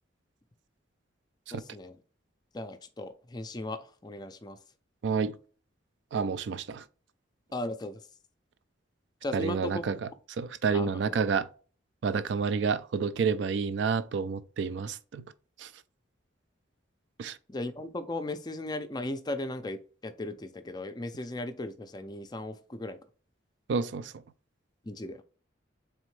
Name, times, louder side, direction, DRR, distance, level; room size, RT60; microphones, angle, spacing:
voice 1, 1.5-2.0 2.5-4.6 7.5-8.0 9.2-9.8 10.7-11.2 17.5-23.0 24.8-25.2, left 2 dB, 20° left, 0.4 m, -37 dB
voice 2, 5.0-5.4 6.1-6.8 9.3-10.1 10.4-11.5 12.0-15.2 15.6-15.7 17.2-17.4 23.7-24.1, right 5 dB, 65° right, 0.4 m, -29 dB
4.1 x 3.5 x 3.1 m
head